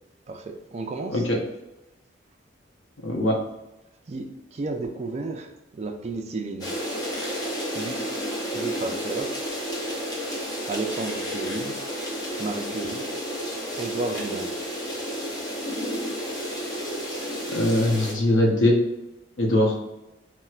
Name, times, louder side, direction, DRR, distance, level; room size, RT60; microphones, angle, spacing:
voice 1, 0.3-1.2 4.1-6.7 7.7-8.1 8.5-9.4 10.7-11.8 12.4-13.1 13.8-14.5, right 3 dB, 35° right, 4 dB, 0.3 m, -32 dB
voice 2, 3.0-3.3 17.5-18.8 19.4-19.7, left 1 dB, 90° left, 1 dB, 0.7 m, -21 dB
sound 1, 6.6-18.1, equal, 20° left, 0.6 m, -31 dB
4.2 x 2.1 x 2.3 m, 0.94 s
head